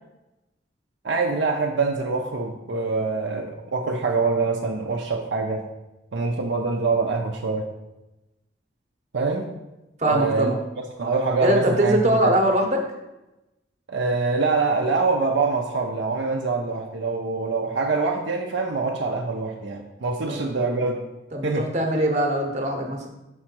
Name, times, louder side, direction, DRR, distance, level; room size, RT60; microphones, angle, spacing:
voice 1, 1.0-5.7 6.1-7.7 9.1-9.5 10.1-10.5 11.0-12.0 12.2-12.3 13.9-21.0 21.4-21.7, right 4 dB, 65° right, 1 dB, 0.6 m, -24 dB
voice 2, 10.0-10.6 11.4-12.8 20.3-20.5 21.3-23.1, right 1 dB, 35° right, 2 dB, 1.0 m, -22 dB
6.3 x 4.8 x 4.5 m, 0.99 s
head